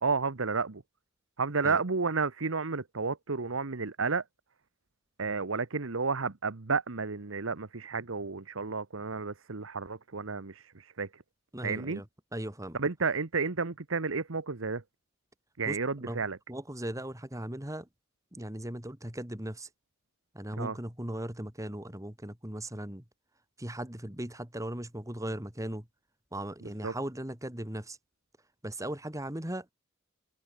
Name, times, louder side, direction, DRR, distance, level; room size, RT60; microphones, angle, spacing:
voice 1, 0.0-0.8 1.4-4.2 5.2-11.2 11.6-12.0 12.7-14.8 15.6-16.4 20.6-20.8 26.6-26.9, right 4 dB, 85° right, 1.2 m, -31 dB
voice 2, 11.5-12.0 12.3-12.8 15.7-15.8 16.0-16.2 16.5-17.9 18.3-19.7 20.3-23.0 23.6-25.9 26.3-28.0 28.6-29.7, right 1 dB, 15° right, 2.6 m, -38 dB
head